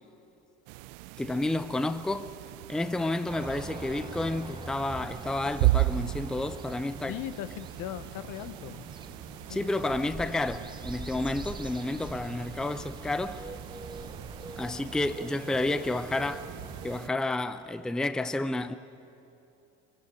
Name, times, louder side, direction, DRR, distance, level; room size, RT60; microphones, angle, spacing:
sound 1, 0.7-17.1, right 19 dB, 85° right, 0.6 m, -36 dB
voice 1, 1.2-2.3 2.7-7.2 9.5-13.4 14.6-16.5 16.8-18.7, left 2 dB, ahead, 0.6 m, -30 dB
sound 2, 3.3-17.0, right 3 dB, 15° right, 1.1 m, -43 dB
voice 2, 7.1-8.9 9.5-9.7 12.3-12.6, left 12 dB, 65° left, 1.1 m, -39 dB
22.0 x 16.5 x 8.9 m
supercardioid pair, 100°, 33 cm